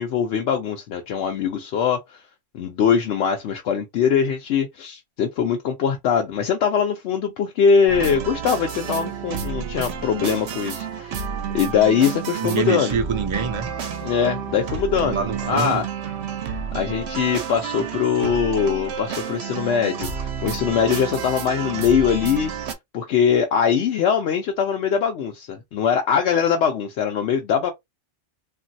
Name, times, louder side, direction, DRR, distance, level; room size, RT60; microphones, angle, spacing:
voice 1, 0.0-2.2 2.5-11.3 11.5-13.0 14.0-15.9 16.7-22.5 22.9-27.7, left 7 dB, 75° left, 0.9 m, -22 dB
sound 1, 7.9-22.7, right 7 dB, 70° right, 0.9 m, -30 dB
voice 2, 12.4-13.7 15.1-15.8, right 6 dB, 40° right, 0.4 m, -25 dB
3.0 x 2.5 x 2.6 m
omnidirectional pair, 1.2 m